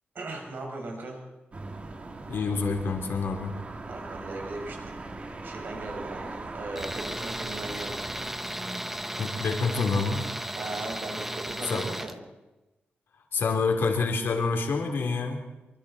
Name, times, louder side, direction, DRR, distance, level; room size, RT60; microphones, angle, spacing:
voice 1, 0.1-1.2 3.9-5.0 5.4-8.0 10.6-12.2, right 2 dB, 60° right, 1 dB, 5.5 m, -38 dB
sound 1, 1.5-8.3, right 3 dB, 35° right, 1.6 m, -40 dB
voice 2, 2.3-3.5 9.2-10.3 11.7-11.8 13.3-15.4, left 4 dB, 75° left, 2 dB, 3.4 m, -27 dB
Tools, 6.8-12.2, right 1 dB, 5° right, 0.8 m, -35 dB
25.0 x 24.5 x 4.3 m, 1.1 s
wide cardioid pair, 165°, 4 cm